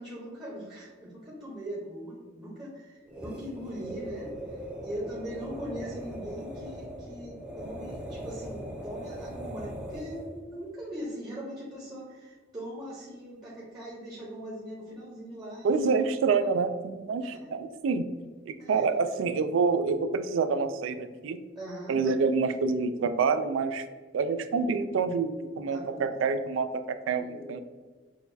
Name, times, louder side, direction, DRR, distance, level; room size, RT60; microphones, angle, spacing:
voice 1, 0.0-4.3 4.8-15.9 16.4-16.5 17.2-17.5 18.6-18.9 21.6-22.0 25.7-26.1 27.2-27.6, equal, 20° right, -6 dB, 0.8 m, -40 dB
sound 1, 3.1-10.4, equal, 5° right, 0.5 m, -40 dB
voice 2, 15.6-18.0 18.5-21.4 21.9-23.8 24.1-27.6, right 4 dB, 80° right, 10 dB, 0.3 m, -27 dB
6.3 x 2.3 x 2.6 m, 1.4 s
head